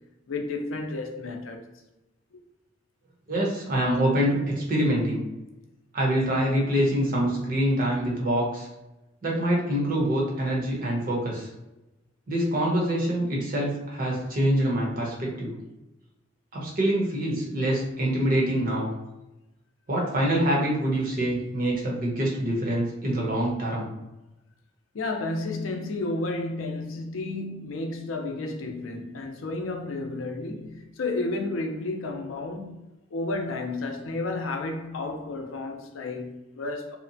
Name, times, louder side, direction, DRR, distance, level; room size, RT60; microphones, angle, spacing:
voice 1, 0.3-1.7 24.9-32.8 33.1-37.0, left 2 dB, 85° left, 0.5 m, -32 dB
voice 2, 3.3-5.2 5.9-8.7 9.2-11.5 12.3-15.6 16.5-18.9 19.9-23.9, right 1 dB, 45° right, 0.9 m, -25 dB
2.8 x 2.1 x 2.6 m
head